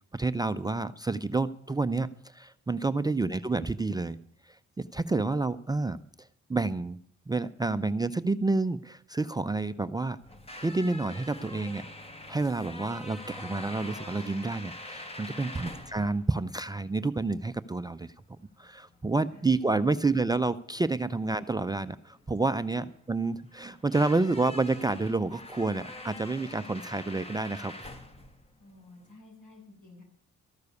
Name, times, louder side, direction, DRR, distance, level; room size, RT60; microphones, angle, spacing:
voice 1, 0.1-4.2 4.4-7.0 7.3-10.2 10.6-11.9 12.3-18.1 18.6-27.9, right 3 dB, 15° right, 10 dB, 0.4 m, -29 dB
sound 1, 10.2-29.1, left 1 dB, 20° left, 1.5 m, -45 dB
voice 2, 22.4-22.8 28.6-30.0, equal, 70° left, 0 dB, 7.1 m, -52 dB
13.5 x 6.7 x 9.6 m, 0.63 s
cardioid pair, 90°, 30 cm